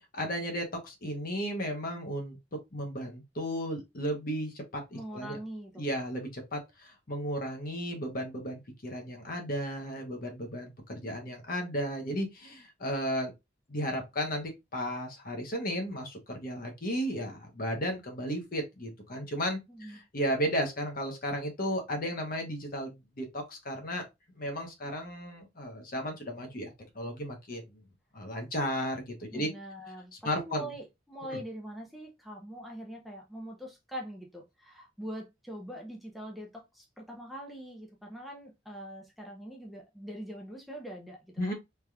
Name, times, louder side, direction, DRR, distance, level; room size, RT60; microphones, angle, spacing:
voice 1, 0.0-2.4 2.7-5.4 5.8-13.3 13.7-24.0 24.4-27.8 28.1-29.5 30.2-30.7 31.2-31.4 41.4-41.5, equal, 50° left, 1.0 m, -34 dB
voice 2, 4.9-5.8 19.7-20.0 29.3-41.5, equal, ahead, 0.6 m, -43 dB
3.4 x 2.9 x 2.3 m
head